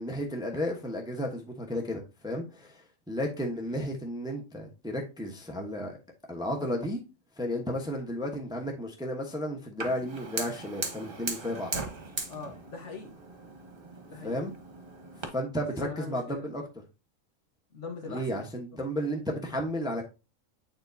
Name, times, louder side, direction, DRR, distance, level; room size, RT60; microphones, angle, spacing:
voice 1, 0.0-6.0 6.3-7.0 7.4-11.7 14.2-14.5 15.3-16.6 18.1-20.0, equal, 5° right, 0.9 m, -33 dB
Fire, 9.8-15.3, right 3 dB, 45° right, 1.3 m, -38 dB
voice 2, 12.3-13.2 14.1-14.4 15.7-16.5 17.7-18.9, left 4 dB, 60° left, 1.5 m, -42 dB
8.9 x 4.0 x 2.7 m
omnidirectional pair, 1.4 m